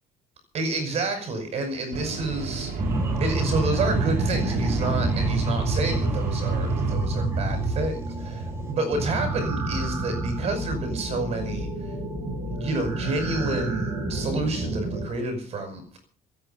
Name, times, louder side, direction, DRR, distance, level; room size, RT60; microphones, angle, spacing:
voice 1, 0.5-2.7 3.2-11.9 12.3-16.0, right 2 dB, 45° right, 7 dB, 5.5 m, -29 dB
sound 1, 1.9-7.0, right 4 dB, 60° right, 3.3 m, -33 dB
sound 2, 2.8-15.1, right 2 dB, 15° right, 4.5 m, -28 dB
26.5 x 8.9 x 5.7 m, 0.43 s
cardioid pair, 145°, 15 cm